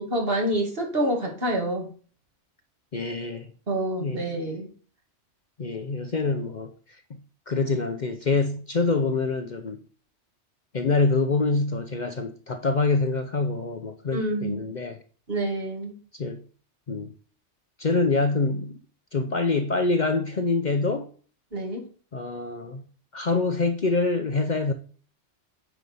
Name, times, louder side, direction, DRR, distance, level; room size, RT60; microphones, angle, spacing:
voice 1, 0.0-1.9 3.7-4.7 14.1-14.6 15.3-15.9 21.5-21.8, right 1 dB, 50° right, 2.4 m, -27 dB
voice 2, 2.9-3.5 4.0-4.3 5.6-6.7 7.5-9.8 10.7-15.0 16.2-16.4 16.9-17.1 17.8-18.8 19.1-21.1 22.1-22.8 23.1-24.7, left 3 dB, 45° left, 0.8 m, -25 dB
9.6 x 4.6 x 5.4 m
omnidirectional pair, 1.2 m